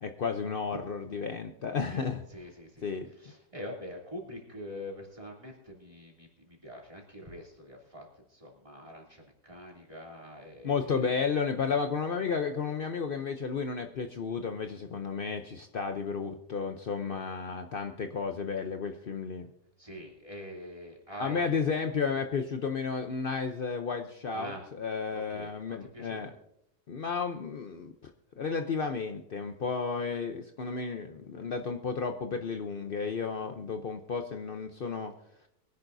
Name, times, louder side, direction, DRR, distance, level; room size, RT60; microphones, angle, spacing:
voice 1, 0.0-2.2 2.8-3.1 10.6-19.5 21.2-24.5 24.8-26.3 26.9-28.1 28.4-35.1, left 5 dB, 75° left, 6 dB, 0.5 m, -32 dB
voice 2, 1.9-11.2 19.8-21.6 24.3-24.6 25.1-26.3, equal, 15° right, -2 dB, 2.9 m, -45 dB
23.0 x 11.0 x 2.7 m, 0.78 s
omnidirectional pair, 1.9 m